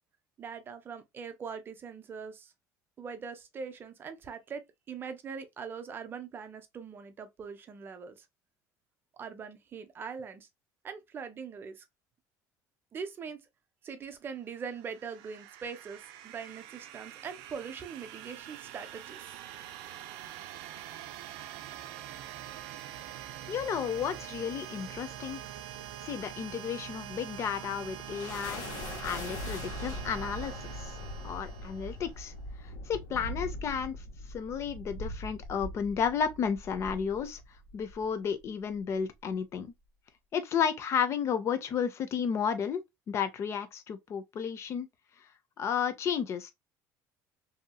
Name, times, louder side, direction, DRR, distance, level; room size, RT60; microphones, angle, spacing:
voice 1, 0.4-2.5 3.0-8.2 9.1-10.5 10.8-11.8 12.9-13.4 13.8-19.4, right 6 dB, 30° right, 0.5 m, -42 dB
sound 1, 14.5-32.2, right 11 dB, 80° right, 0.4 m, -45 dB
voice 2, 23.5-25.4 26.0-28.6 29.0-31.0 31.2-32.3 32.6-34.0 34.3-37.4 37.7-39.7 40.3-44.9 45.6-46.5, left 7 dB, 40° left, 0.6 m, -32 dB
sound 2, 27.3-38.1, left 1 dB, 70° left, 1.5 m, -41 dB
2.8 x 2.7 x 2.2 m
cardioid pair, 140°, 7 cm